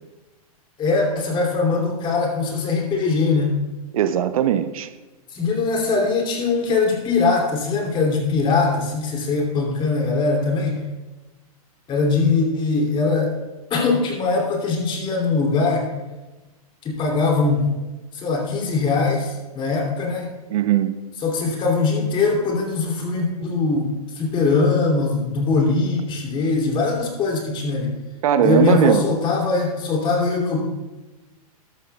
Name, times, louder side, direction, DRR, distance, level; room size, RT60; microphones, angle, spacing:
voice 1, 0.8-3.6 5.3-10.8 11.9-13.3 13.7-15.9 16.8-17.7 18.1-20.3 21.2-27.9 28.4-30.6, left 4 dB, 25° left, 0 dB, 2.9 m, -21 dB
voice 2, 3.9-4.9 20.5-20.9 28.2-29.1, right 10 dB, 65° right, 12 dB, 0.7 m, -19 dB
13.0 x 12.5 x 2.4 m, 1.1 s
hypercardioid pair, 130°, 19 cm